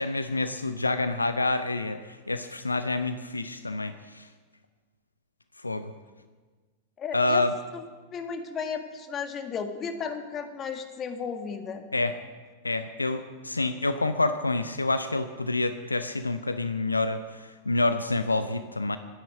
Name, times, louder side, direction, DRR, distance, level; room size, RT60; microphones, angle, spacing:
voice 1, 0.0-4.3 5.6-5.9 7.1-7.5 11.9-12.1 12.6-19.0, left 2 dB, 80° left, 10 dB, 0.6 m, -28 dB
voice 2, 7.0-7.5 7.7-7.8 8.1-11.8, left 6 dB, 25° left, 6 dB, 1.7 m, -34 dB
12.5 x 10.0 x 7.7 m, 1.4 s
figure-of-eight pair, 90°, 0 cm